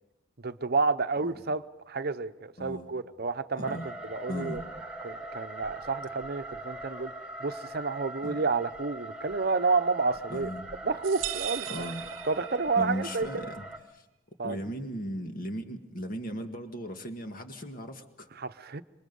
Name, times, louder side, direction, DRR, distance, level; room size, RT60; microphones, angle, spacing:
voice 1, 0.4-4.6 5.0-7.1 7.4-10.5 10.8-11.9 12.2-13.5 14.4-14.6 18.4-18.8, right 4 dB, 50° right, 0.8 m, -30 dB
voice 2, 2.6-2.9 3.6-3.9 4.3-4.6 8.2-8.4 10.3-10.7 11.7-12.0 12.8-14.0 14.4-18.3, equal, 45° left, 1.9 m, -37 dB
sound 1, 3.6-13.8, right 1 dB, 5° right, 2.1 m, -42 dB
sound 2, 11.0-13.0, right 13 dB, 80° right, 0.7 m, -37 dB
27.0 x 24.0 x 5.4 m
head